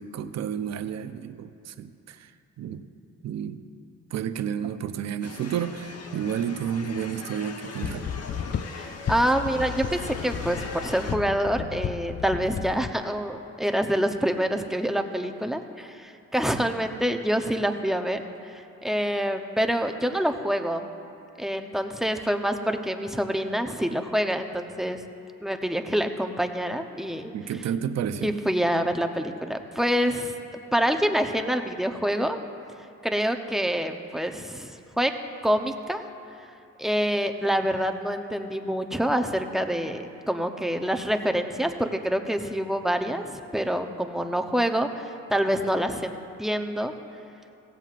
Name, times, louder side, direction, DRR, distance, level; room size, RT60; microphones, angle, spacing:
voice 1, 0.0-2.3 2.6-2.9 3.2-3.7 4.1-8.1 27.3-28.3, right 8 dB, 60° right, 10 dB, 0.7 m, -31 dB
sound 1, 5.2-11.2, left 4 dB, 55° left, 1.1 m, -40 dB
sound 2, 7.8-12.9, left 8 dB, 35° left, 0.4 m, -34 dB
voice 2, 8.7-20.8 21.4-25.0 25.4-27.3 28.2-30.3 30.7-32.4 33.0-35.1 35.4-36.0 36.8-46.9, equal, ahead, 5 dB, 0.8 m, -26 dB
16.5 x 15.0 x 2.5 m, 2.6 s
cardioid pair, 90°, 30 cm